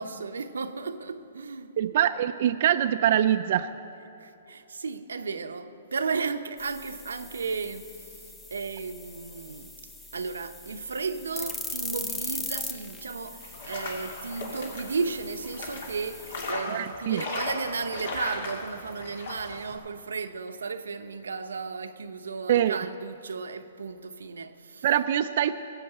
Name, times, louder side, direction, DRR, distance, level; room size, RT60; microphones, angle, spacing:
voice 1, 0.0-1.8 4.2-8.1 8.5-9.8 10.1-24.9, right 4 dB, 90° right, 0.8 m, -34 dB
voice 2, 1.8-3.7 16.7-17.2 22.5-22.8 24.8-25.5, right 11 dB, 55° right, 0.4 m, -24 dB
sound 1, 6.6-16.5, left 3 dB, 10° left, 0.9 m, -40 dB
sound 2, 13.4-19.7, left 2 dB, 65° left, 3.0 m, -37 dB
16.5 x 7.5 x 7.9 m
hypercardioid pair, 145°, 0 cm